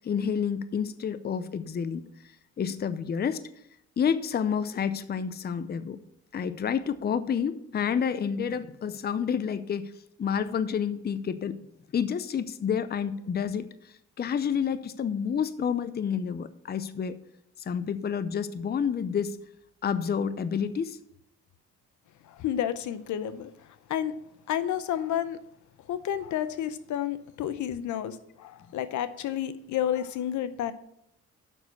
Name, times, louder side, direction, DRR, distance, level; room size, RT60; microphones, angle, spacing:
voice 1, 0.0-2.0 2.6-3.5 4.0-6.0 6.3-9.9 10.2-11.6 11.9-13.7 14.2-17.2 17.6-19.4 19.8-21.0, left 7 dB, 35° left, 13 dB, 0.6 m, -29 dB
voice 2, 22.2-23.5 23.9-24.1 24.5-25.4 25.9-30.7, left 10 dB, 75° left, 13 dB, 0.7 m, -30 dB
7.2 x 6.2 x 6.7 m, 0.77 s
cardioid pair, 90°, 30 cm